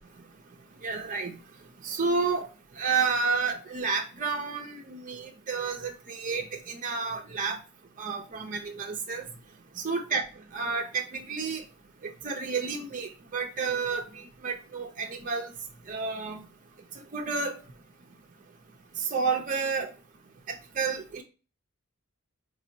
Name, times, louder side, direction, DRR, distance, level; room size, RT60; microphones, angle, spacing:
voice 1, 0.8-1.3 1.8-2.5 2.8-7.6 8.0-9.3 9.8-10.2 10.5-11.6 12.0-15.5 15.9-16.4 17.1-17.6 19.0-19.9 20.5-21.2, right 5 dB, 40° right, 2 dB, 0.4 m, -30 dB
4.3 x 2.0 x 2.6 m, 0.34 s
head